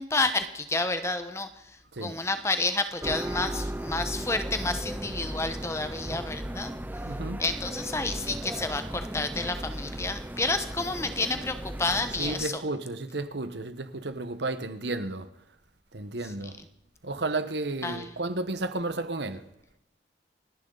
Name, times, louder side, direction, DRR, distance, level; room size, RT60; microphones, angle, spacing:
voice 1, 0.0-6.7 7.4-12.6 17.8-18.1, left 3 dB, 15° left, 1.1 m, -30 dB
sound 1, 3.0-12.4, right 1 dB, 10° right, 0.5 m, -36 dB
voice 2, 7.0-7.4 12.2-15.3 15.9-16.6 17.0-19.4, right 2 dB, 70° right, 1.2 m, -32 dB
29.5 x 10.5 x 4.0 m
head